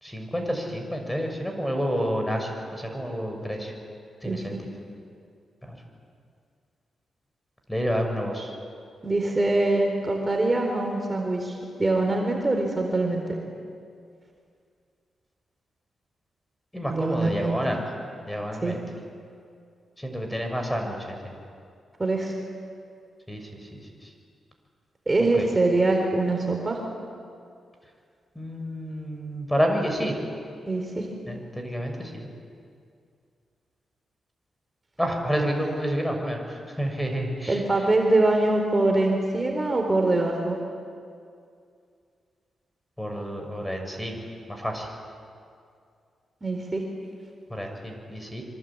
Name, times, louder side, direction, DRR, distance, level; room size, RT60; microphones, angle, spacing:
voice 1, 0.0-3.7 4.2-4.6 5.7-5.8 7.7-8.5 16.7-17.8 18.3-18.8 20.0-21.3 23.3-23.4 23.7-23.8 25.2-25.5 28.3-30.2 31.3-32.3 35.0-37.6 43.0-44.2 44.5-44.9 47.5-48.4, equal, 5° left, 3 dB, 6.4 m, -29 dB
voice 2, 4.2-4.6 9.0-13.2 16.9-17.6 18.6-18.7 22.0-22.4 25.1-26.8 30.7-31.1 37.5-40.6 46.4-46.8, right 2 dB, 25° right, 2 dB, 4.1 m, -24 dB
26.0 x 25.5 x 8.9 m, 2.3 s
cardioid pair, 70°, 0 cm